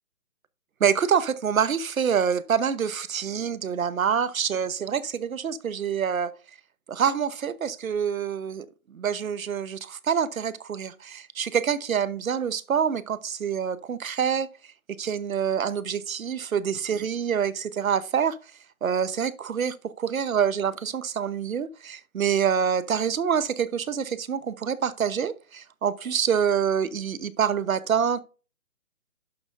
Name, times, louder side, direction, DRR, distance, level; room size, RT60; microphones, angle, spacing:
voice 1, 0.8-6.3 6.9-14.5 15.0-18.4 18.8-28.2, right 7 dB, 70° right, 0.9 m, -26 dB
11.5 x 6.1 x 2.6 m
hypercardioid pair, 170°, 43 cm